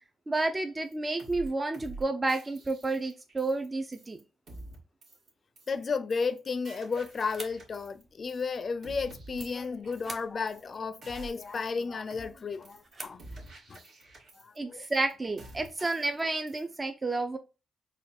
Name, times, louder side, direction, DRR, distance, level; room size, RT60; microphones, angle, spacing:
voice 1, 0.3-4.2 14.6-17.4, right 2 dB, 25° right, 0.5 m, -30 dB
sound 1, 0.9-1.0 1.2-1.5 1.7-2.0 2.3-3.7 3.9-4.2 4.5-4.8 5.0-5.3 5.6-5.8 6.1-6.4 6.7-8.0 8.3-8.6 8.8-10.2 10.5-10.7 11.0-11.8 12.1-12.4 12.7-12.9 13.2-14.6 14.8-15.1 15.4-16.2 16.5-16.8, right 2 dB, 70° right, 1.8 m, -48 dB
voice 2, 5.7-13.2 13.7-13.8 14.4-14.8, left 5 dB, 50° left, 0.5 m, -33 dB
sound 2, 7.0-13.7, right 3 dB, 45° right, 0.9 m, -50 dB
4.2 x 2.3 x 4.2 m
cardioid pair, 80°, 0 cm